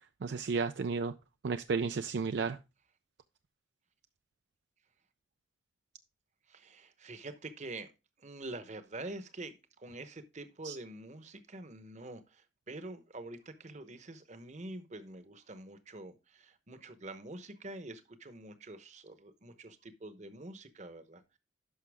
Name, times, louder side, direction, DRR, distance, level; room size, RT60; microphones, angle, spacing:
voice 1, 0.2-1.1 1.4-2.6 10.6-10.8, right 5 dB, 60° right, 0.4 m, -32 dB
voice 2, 6.5-7.9 8.2-21.4, right 2 dB, 35° right, 0.9 m, -46 dB
11.5 x 5.6 x 3.5 m
head